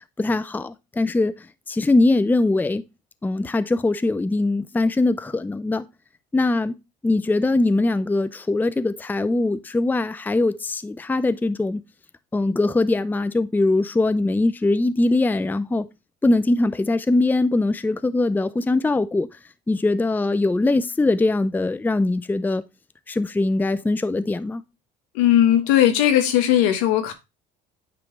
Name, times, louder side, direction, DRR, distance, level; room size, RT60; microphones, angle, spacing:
voice 1, 0.2-1.3 1.7-2.8 3.2-5.8 6.3-6.8 7.0-11.8 12.3-15.9 16.2-19.3 19.7-22.6 23.1-24.6, left 2 dB, 10° left, 0.5 m, -21 dB
voice 2, 25.1-27.1, left 11 dB, 80° left, 1.4 m, -18 dB
9.3 x 3.2 x 4.6 m
supercardioid pair, 85°, 21 cm